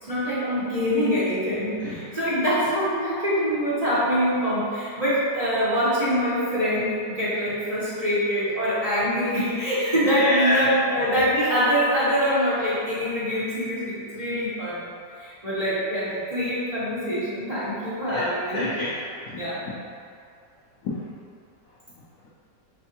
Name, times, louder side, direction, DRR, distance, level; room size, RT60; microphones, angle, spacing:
voice 1, 0.0-14.9 15.2-18.7 19.3-19.6, equal, 25° right, -13 dB, 0.9 m, -24 dB
voice 2, 10.1-10.7 18.1-18.2 18.5-19.4 19.7-19.8 20.8-21.0, left 2 dB, 70° left, -7 dB, 0.8 m, -27 dB
4.2 x 3.3 x 2.9 m, 2.2 s
omnidirectional pair, 1.9 m